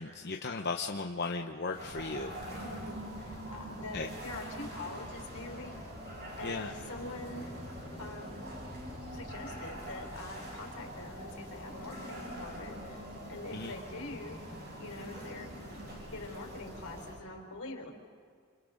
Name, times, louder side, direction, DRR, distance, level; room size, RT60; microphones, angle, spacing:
voice 1, 0.0-2.4 3.9-4.1 6.4-6.7 13.5-13.8, left 3 dB, 50° left, 3 dB, 0.9 m, -36 dB
sound 1, 1.7-17.1, equal, 45° right, 7.4 m, -44 dB
voice 2, 2.6-5.8 6.4-7.5 8.0-8.5 9.1-14.4 14.8-15.6 16.1-17.9, left 2 dB, 80° left, 2 dB, 4.0 m, -44 dB
29.0 x 27.0 x 4.0 m, 2.1 s
head